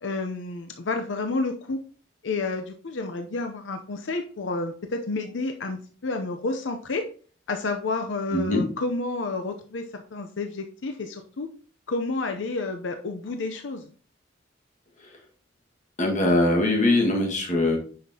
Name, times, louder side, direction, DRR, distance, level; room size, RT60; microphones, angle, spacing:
voice 1, 0.0-1.8 2.2-7.0 7.5-11.5 11.9-13.8, left 3 dB, 85° left, 6 dB, 0.7 m, -30 dB
voice 2, 8.3-8.6 16.0-17.8, left 2 dB, 40° left, 0 dB, 1.7 m, -22 dB
9.5 x 5.8 x 2.8 m, 0.42 s
head